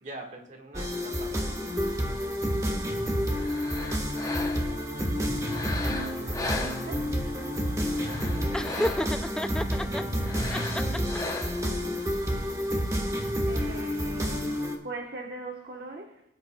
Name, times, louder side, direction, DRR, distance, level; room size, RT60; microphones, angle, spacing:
voice 1, 0.0-1.3 8.2-8.9, right 2 dB, 45° right, 1.6 m, -42 dB
sound 1, 0.7-14.8, equal, 20° right, 1.3 m, -29 dB
sound 2, 3.3-4.9 5.4-7.3 7.8-9.3 10.2-11.8, left 3 dB, 20° left, 0.8 m, -37 dB
voice 2, 5.0-7.2 10.9-12.6 13.5-16.2, right 2 dB, 65° right, 1.1 m, -42 dB
Laughter, 8.5-10.0 10.5-11.4, left 1 dB, 5° left, 0.3 m, -30 dB
18.5 x 9.0 x 2.2 m
head